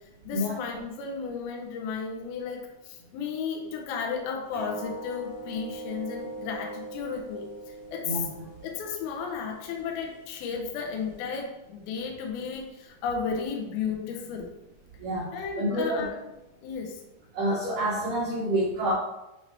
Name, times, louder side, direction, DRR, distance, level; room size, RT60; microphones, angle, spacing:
voice 1, 0.2-8.3 8.6-14.5 15.3-16.2 16.6-17.0, left 6 dB, 85° left, 1 dB, 2.1 m, -34 dB
sound 1, 4.5-11.4, right 2 dB, 35° right, 2.2 m, -43 dB
voice 2, 15.0-15.3 15.6-16.1 17.3-18.9, right 1 dB, 85° right, -5 dB, 1.8 m, -27 dB
8.6 x 3.4 x 4.3 m, 0.93 s
omnidirectional pair, 5.8 m